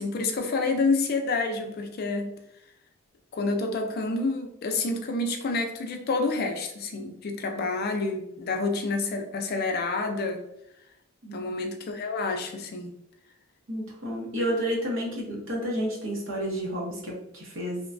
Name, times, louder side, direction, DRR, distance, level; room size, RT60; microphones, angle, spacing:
voice 1, 0.0-2.3 3.3-10.4 11.3-12.9 14.4-14.6, left 3 dB, 50° left, 4 dB, 0.4 m, -28 dB
voice 2, 11.2-11.5 13.7-17.8, equal, 65° right, -3 dB, 0.9 m, -31 dB
2.9 x 2.1 x 2.5 m, 0.81 s
head